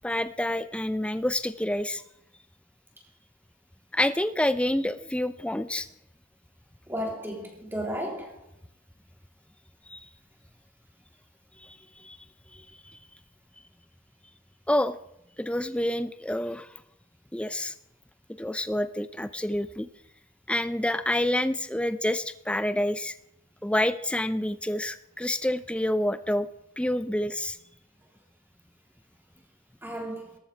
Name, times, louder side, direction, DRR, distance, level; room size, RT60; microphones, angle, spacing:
voice 1, 0.0-2.0 3.9-5.9 9.9-10.0 11.6-12.2 12.5-13.0 14.7-15.0 15.4-16.7 17.3-17.7 18.4-19.9 20.5-23.1 23.6-26.5 26.8-27.6, left 1 dB, 5° left, 0.5 m, -28 dB
voice 2, 6.9-8.4 29.8-30.4, equal, 10° right, 3.1 m, -34 dB
17.5 x 14.0 x 4.5 m
head